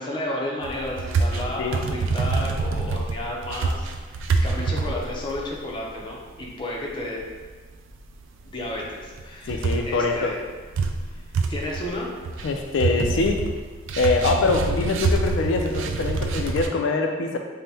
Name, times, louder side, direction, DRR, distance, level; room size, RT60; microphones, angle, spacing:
voice 1, 0.0-7.2 8.4-10.4 11.5-12.1, left 1 dB, 25° left, -3 dB, 0.5 m, -32 dB
sound 1, 0.6-6.1 6.4-6.5 7.0-7.4 7.9-8.0 8.2-8.3 8.6-8.9 9.2-16.7, right 3 dB, 90° right, 0.3 m, -26 dB
voice 2, 9.5-10.3 12.4-13.4 14.0-17.4, left 3 dB, 80° left, 3 dB, 0.3 m, -23 dB
5.3 x 2.1 x 2.7 m, 1.4 s
head